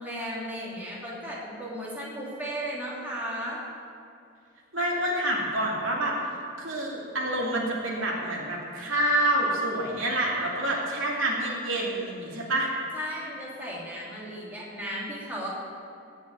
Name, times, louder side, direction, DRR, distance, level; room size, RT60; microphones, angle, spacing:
voice 1, 0.0-3.6 12.9-15.5, equal, 10° right, -6 dB, 2.9 m, -35 dB
voice 2, 4.7-6.1 6.6-12.7, right 1 dB, 65° right, -3 dB, 2.7 m, -27 dB
17.0 x 6.4 x 8.8 m, 2.5 s
head